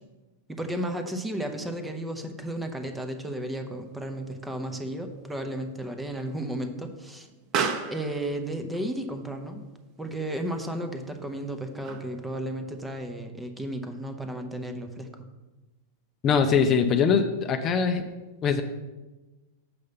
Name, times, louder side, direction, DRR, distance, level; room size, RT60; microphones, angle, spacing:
voice 1, 0.5-7.3 7.9-9.7 10.0-15.1, right 1 dB, 5° right, 6 dB, 0.8 m, -33 dB
Explosion, 3.3-12.3, right 6 dB, 35° right, 0.9 m, -38 dB
voice 2, 16.2-18.0 18.4-18.6, left 6 dB, 30° left, 7 dB, 0.6 m, -22 dB
6.7 x 5.4 x 5.2 m, 1.2 s
hypercardioid pair, 130°, 0 cm